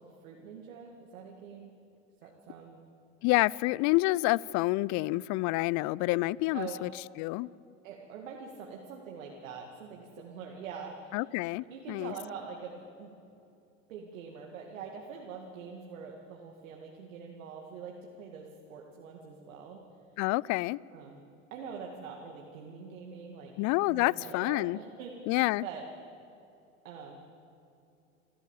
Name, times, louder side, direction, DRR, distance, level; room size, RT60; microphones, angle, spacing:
voice 1, 0.0-1.7 2.2-2.8 6.5-6.9 7.8-11.2 11.7-13.2 13.9-19.8 20.9-21.2 21.5-23.5 23.9-25.9 26.8-27.2, right 6 dB, 75° right, 2.3 m, -44 dB
voice 2, 3.2-6.9 7.2-7.5 11.1-12.1 20.2-20.8 23.6-24.8 25.3-25.7, left 21 dB, 45° left, 0.5 m, -28 dB
28.0 x 13.0 x 7.3 m
hypercardioid pair, 80°, 40 cm